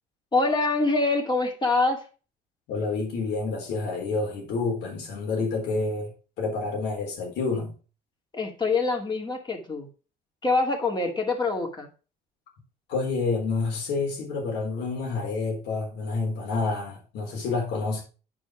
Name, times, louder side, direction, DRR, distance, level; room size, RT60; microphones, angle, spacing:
voice 1, 0.3-2.0 8.3-9.9 10.4-11.9, left 3 dB, 25° left, 2.4 m, -25 dB
voice 2, 2.7-6.1 6.4-7.7 12.9-18.0, left 3 dB, 90° left, 3.8 m, -28 dB
9.6 x 4.9 x 4.9 m
cardioid pair, 110°, 17 cm